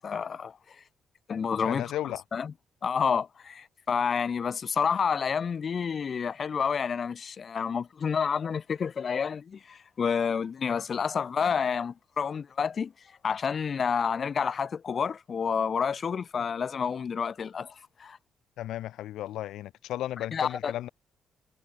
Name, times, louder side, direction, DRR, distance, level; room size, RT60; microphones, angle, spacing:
voice 1, 0.0-0.8 1.3-1.9 2.3-2.5 2.8-12.9 13.2-18.2 20.3-20.7, left 6 dB, 45° left, 7.4 m, -29 dB
voice 2, 1.6-2.2 18.6-20.9, left 13 dB, 80° left, 7.1 m, -34 dB
cardioid pair, 90°, 0 cm